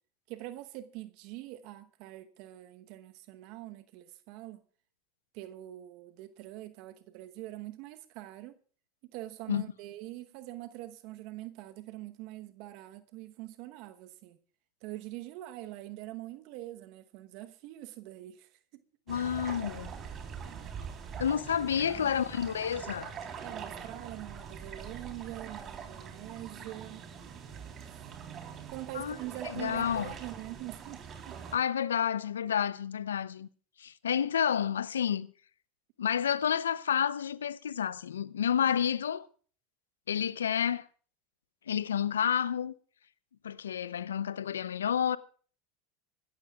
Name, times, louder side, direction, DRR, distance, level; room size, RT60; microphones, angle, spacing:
voice 1, 0.3-4.6 5.3-8.6 9.0-14.4 14.8-18.8 19.8-20.0 20.4-20.7 21.6-22.1 23.4-27.1 27.8-28.1 28.7-31.4, right 15 dB, 60° right, 1.0 m, -44 dB
voice 2, 19.1-19.9 21.2-23.1 28.9-29.2 29.5-30.1 31.5-33.5 33.8-35.3 36.0-39.3 40.1-40.9 41.7-42.7 43.4-45.2, left 8 dB, 85° left, 0.6 m, -30 dB
sound 1, 19.1-31.6, right 6 dB, 40° right, 3.5 m, -43 dB
26.0 x 13.0 x 2.4 m
hypercardioid pair, 80°, 0 cm